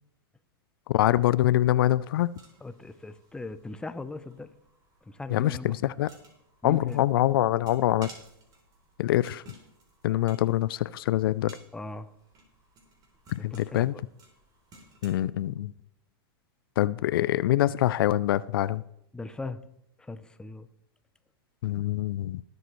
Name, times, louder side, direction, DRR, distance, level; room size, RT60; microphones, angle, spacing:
voice 1, 0.9-2.3 5.3-6.1 6.6-8.1 9.0-9.4 10.0-11.6 13.3-13.9 15.0-15.7 16.8-18.8 21.6-22.4, left 14 dB, 70° left, 18 dB, 0.4 m, -24 dB
sound 1, 2.0-15.1, right 2 dB, 30° right, 3.4 m, -56 dB
voice 2, 2.6-4.5 5.0-5.9 6.6-7.0 11.7-12.1 13.4-14.0 19.1-19.6 20.0-20.7, left 3 dB, 5° left, 11 dB, 0.7 m, -39 dB
19.5 x 7.8 x 3.1 m, 0.81 s
hypercardioid pair, 115°, 12 cm